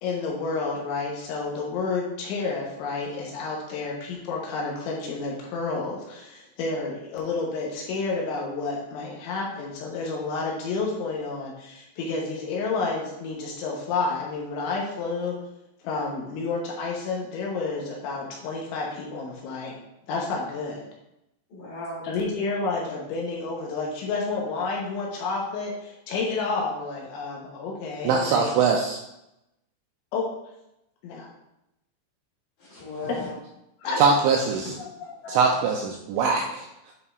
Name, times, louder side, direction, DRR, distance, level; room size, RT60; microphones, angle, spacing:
voice 1, 0.0-15.4 15.8-19.7 20.1-20.9 22.0-28.5 30.1-30.3 31.0-31.3 33.1-33.2 33.8-34.0 34.8-35.4, left 4 dB, 75° left, -2 dB, 3.1 m, -30 dB
voice 2, 21.5-22.1 28.7-28.8 32.6-33.3 33.8-34.3 34.6-34.7 35.2-35.7 36.1-36.2, left 2 dB, 45° left, -7 dB, 3.3 m, -37 dB
voice 3, 28.0-29.0 34.0-34.7 35.3-36.9, right 5 dB, 90° right, 1 dB, 2.7 m, -22 dB
9.6 x 5.6 x 2.4 m, 0.86 s
omnidirectional pair, 5.9 m